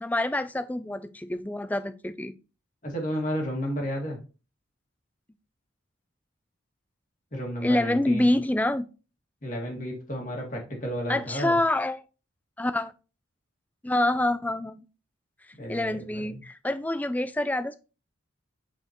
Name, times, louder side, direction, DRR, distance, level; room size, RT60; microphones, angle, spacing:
voice 1, 0.0-2.3 7.6-8.9 11.1-12.0 12.6-12.9 13.8-14.8 15.7-17.8, left 1 dB, 10° left, 0.3 m, -26 dB
voice 2, 2.8-4.2 7.3-8.4 9.4-11.6 15.6-16.4, equal, 40° left, 2.0 m, -32 dB
7.5 x 4.3 x 3.0 m
head